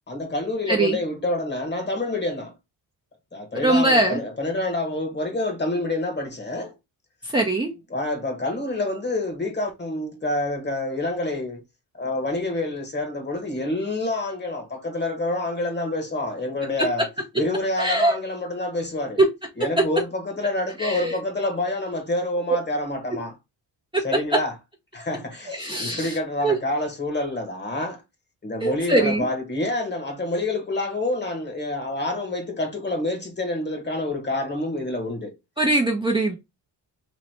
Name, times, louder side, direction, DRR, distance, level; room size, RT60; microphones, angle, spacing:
voice 1, 0.1-2.5 3.3-6.7 7.9-11.6 11.9-17.1 17.4-19.2 19.6-23.3 24.0-24.5 24.9-28.0 28.4-35.3, left 2 dB, 25° left, 1.4 m, -27 dB
voice 2, 3.6-4.2 7.2-7.7 16.8-16.9 17.8-18.1 19.2-19.3 19.8-19.9 20.8-21.2 23.9-24.0 25.5-26.6 28.6-29.3 35.6-36.4, right 2 dB, 10° right, 0.8 m, -21 dB
3.2 x 2.8 x 4.2 m
cardioid pair, 95°, 42 cm